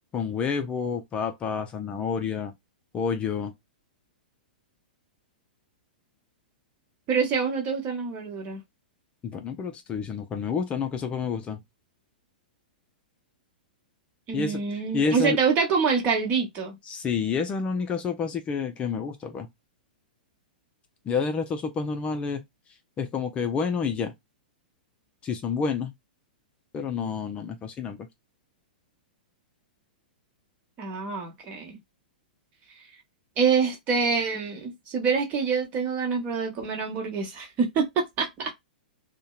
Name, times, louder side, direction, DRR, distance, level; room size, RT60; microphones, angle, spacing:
voice 1, 0.1-2.5 2.9-3.5 9.2-11.6 14.3-14.6 14.9-15.4 16.9-19.5 21.1-22.4 23.0-24.1 25.2-25.9 26.7-28.0, left 5 dB, 25° left, 0.4 m, -29 dB
voice 2, 7.1-8.6 14.3-16.8 30.8-31.8 33.4-38.5, right 5 dB, 35° right, 1.0 m, -26 dB
2.7 x 2.1 x 2.3 m
hypercardioid pair, 110°, 5 cm